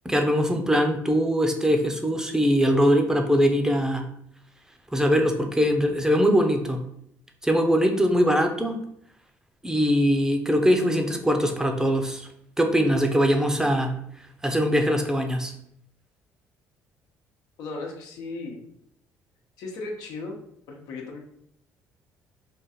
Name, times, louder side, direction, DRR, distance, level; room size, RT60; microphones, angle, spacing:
voice 1, 0.0-4.0 4.9-6.8 7.4-8.7 9.6-12.3 12.6-13.9 14.4-15.5, equal, 10° right, 4 dB, 0.6 m, -22 dB
voice 2, 17.6-18.6 19.6-20.4 20.7-21.2, left 3 dB, 80° left, 1 dB, 0.9 m, -36 dB
3.9 x 2.5 x 4.2 m, 0.71 s
cardioid pair, 90°, 6 cm